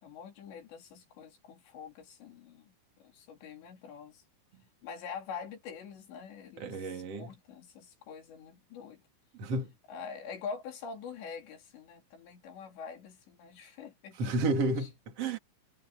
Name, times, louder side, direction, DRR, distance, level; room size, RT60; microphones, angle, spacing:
voice 1, 0.0-2.7 3.0-4.2 4.8-9.0 9.9-14.3 14.8-14.9, left 6 dB, 65° left, 5.5 m, -45 dB
voice 2, 6.6-7.3 9.3-9.7 14.2-15.4, right 2 dB, 35° right, 3.3 m, -31 dB
omnidirectional pair, 5.7 m